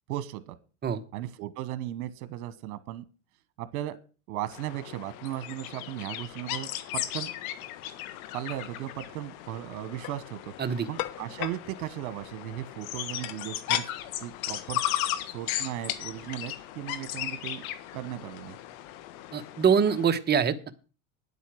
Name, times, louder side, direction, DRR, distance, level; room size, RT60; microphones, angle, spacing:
voice 1, 0.1-0.6 1.1-3.0 3.6-4.0 4.3-7.3 8.3-10.5 10.9-13.8 14.2-14.9 15.3-17.7 17.9-18.6, right 13 dB, 75° right, 14 dB, 1.2 m, -36 dB
sound 1, 4.5-20.1, left 13 dB, 70° left, 1.6 m, -37 dB
sound 2, 9.8-10.2 11.0-11.6 13.2-13.9 14.4-14.5 14.9-15.1 16.0-16.1 16.3-16.5, left 13 dB, 50° left, 1.2 m, -33 dB
voice 2, 19.3-20.7, right 7 dB, 20° right, 9 dB, 1.1 m, -24 dB
9.9 x 8.3 x 6.2 m, 0.35 s
supercardioid pair, 125°, 44 cm